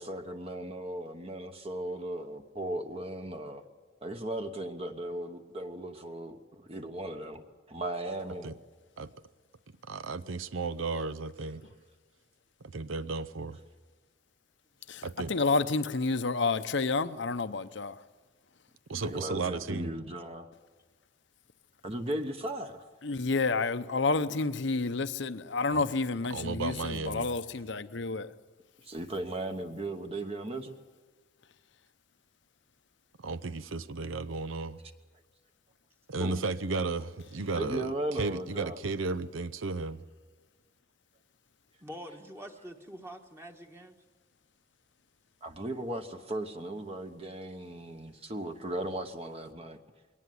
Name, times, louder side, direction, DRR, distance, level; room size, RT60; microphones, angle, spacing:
voice 1, 0.0-3.6 4.0-8.5 11.6-11.7 18.9-20.5 21.8-22.9 28.8-30.8 36.2-36.4 37.5-38.8 45.4-49.8, right 1 dB, 30° right, 1.1 m, -37 dB
voice 2, 9.8-11.6 12.7-13.6 15.0-15.3 18.9-19.9 25.7-25.8 26.3-27.4 33.2-34.8 36.1-40.0, right 3 dB, 85° right, 0.7 m, -34 dB
voice 3, 15.3-18.0 23.0-28.3, left 3 dB, 65° left, 0.8 m, -29 dB
voice 4, 41.8-44.0, equal, 15° right, 1.4 m, -45 dB
22.0 x 18.5 x 9.5 m
head